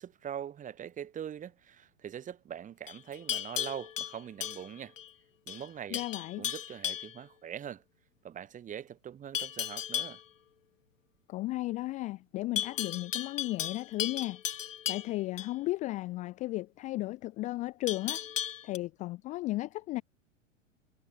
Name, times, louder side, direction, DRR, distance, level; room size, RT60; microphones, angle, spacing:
voice 1, 0.0-4.9 5.5-6.0 6.4-7.8 8.2-10.2, right 9 dB, 20° right, 2.3 m, -42 dB
Livestock farm animals working animals, 2.9-5.1 5.5-5.7 5.9-7.2 9.3-10.2 12.6-15.5 17.9-18.8, left 10 dB, 75° left, 0.5 m, -36 dB
voice 2, 5.9-6.4 11.3-14.4 14.9-18.2 18.6-20.0, left 18 dB, 20° left, 0.5 m, -35 dB
figure-of-eight pair, 95°, 39 cm